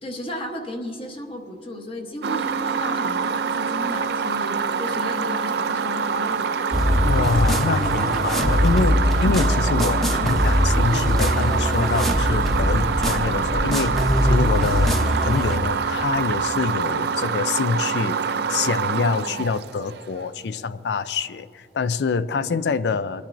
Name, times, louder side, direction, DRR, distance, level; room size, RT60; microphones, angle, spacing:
voice 1, 0.0-6.5 9.2-9.3, left 1 dB, 30° left, 2 dB, 1.1 m, -34 dB
sound 1, 2.2-20.2, right 6 dB, 65° right, 0.4 m, -25 dB
sound 2, 6.7-15.6, equal, ahead, 0.8 m, -22 dB
voice 2, 7.0-23.3, left 4 dB, 70° left, 15 dB, 0.4 m, -26 dB
30.0 x 10.5 x 2.6 m, 2.4 s
head